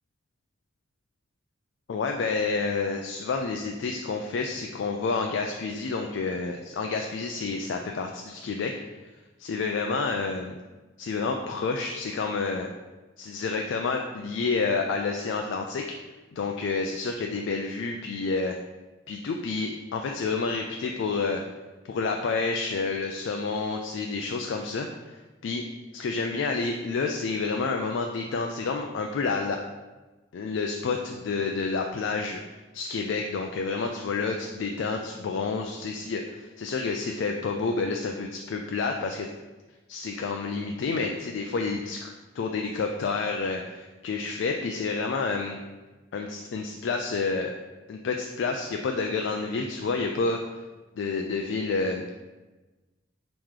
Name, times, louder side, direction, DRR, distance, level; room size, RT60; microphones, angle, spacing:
voice 1, 1.9-8.7 9.4-10.6 11.0-12.7 13.2-15.9 16.3-18.6 19.1-21.4 21.9-25.2 25.4-25.6 25.9-29.6 30.3-32.4 32.7-39.3 39.9-45.6 46.1-47.5 47.9-50.4 51.0-52.1, left 4 dB, 70° left, 3 dB, 0.3 m, -29 dB
3.6 x 3.0 x 4.8 m, 1.2 s
head